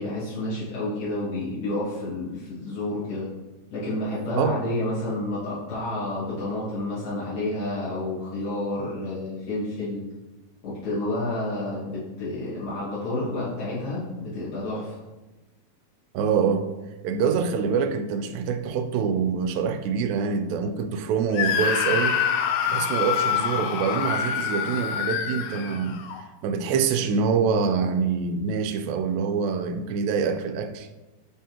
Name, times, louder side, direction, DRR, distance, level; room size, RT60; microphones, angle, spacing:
voice 1, 0.0-3.3 3.7-10.0 10.6-15.0, left 2 dB, 75° left, -11 dB, 3.3 m, -30 dB
voice 2, 16.1-16.7 17.0-22.2 22.7-26.0 26.4-30.9, right 6 dB, 85° right, 7 dB, 2.3 m, -25 dB
Screaming, 21.3-26.2, left 7 dB, 90° left, 1.6 m, -26 dB
9.9 x 3.5 x 2.9 m, 1.1 s
omnidirectional pair, 4.0 m